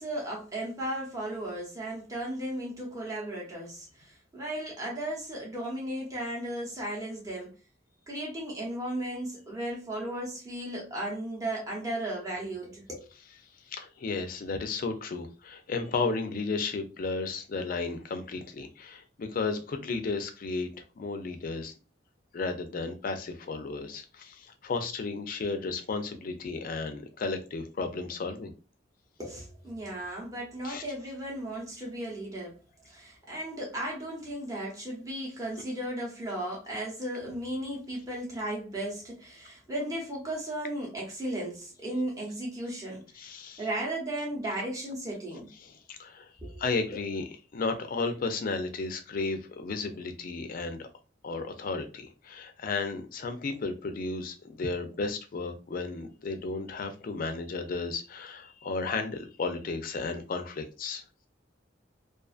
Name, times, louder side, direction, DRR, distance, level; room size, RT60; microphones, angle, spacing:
voice 1, 0.0-7.5 8.1-13.1 29.2-32.6 32.9-43.0 43.6-45.5 46.4-46.6, right 1 dB, 20° right, 0.8 m, -35 dB
voice 2, 13.7-20.7 21.0-21.7 22.3-28.5 30.6-30.8 43.2-43.7 45.6-46.3 46.6-50.9 51.2-61.0, left 3 dB, 50° left, 0.4 m, -33 dB
2.4 x 2.4 x 2.3 m
head